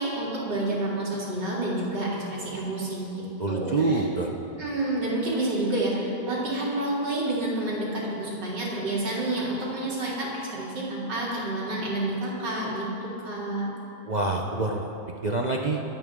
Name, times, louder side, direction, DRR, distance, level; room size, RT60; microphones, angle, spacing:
voice 1, 0.0-4.0 4.6-13.7, right 1 dB, 90° right, -6 dB, 3.6 m, -29 dB
voice 2, 3.4-4.3 14.1-14.9 15.2-15.8, right 3 dB, 50° right, 0 dB, 0.5 m, -26 dB
24.0 x 9.0 x 3.7 m, 2.9 s
omnidirectional pair, 1.8 m